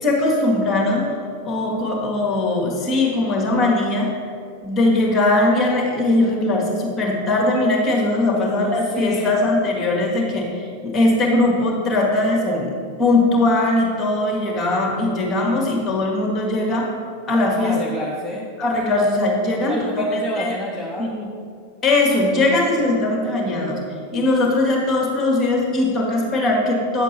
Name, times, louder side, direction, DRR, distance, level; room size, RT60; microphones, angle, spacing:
voice 1, 0.0-1.1 1.4-4.1 4.6-16.9 17.3-17.8 18.6-20.5 21.0-21.3 21.8-23.8 24.1-27.0, left 2 dB, 20° left, -1 dB, 1.7 m, -20 dB
voice 2, 8.4-9.3 17.6-18.5 19.7-21.1, left 1 dB, ahead, -4 dB, 0.7 m, -29 dB
9.6 x 7.2 x 2.8 m, 2.3 s
figure-of-eight pair, 90°, 0 cm